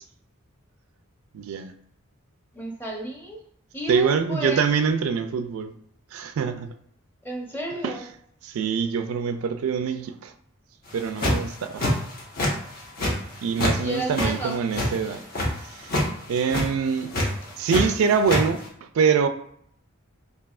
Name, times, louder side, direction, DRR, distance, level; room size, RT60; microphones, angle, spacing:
voice 1, 1.3-1.7 3.9-5.7 6.1-6.7 7.8-8.0 8.4-10.3 10.9-12.0 13.4-15.2 15.6-17.1 17.6-19.3, right 6 dB, 75° right, 0.3 m, -25 dB
voice 2, 2.5-3.4 3.7-4.6 7.2-8.0 13.8-14.6, right 1 dB, 10° left, 0.7 m, -31 dB
sound 1, 10.9-11.5 11.8-12.5 12.8-13.8 14.0-15.5 15.8-16.1 16.4-16.6 17.1-17.8 18.1-18.4, left 1 dB, 50° left, 1.1 m, -24 dB
4.7 x 2.8 x 2.4 m
head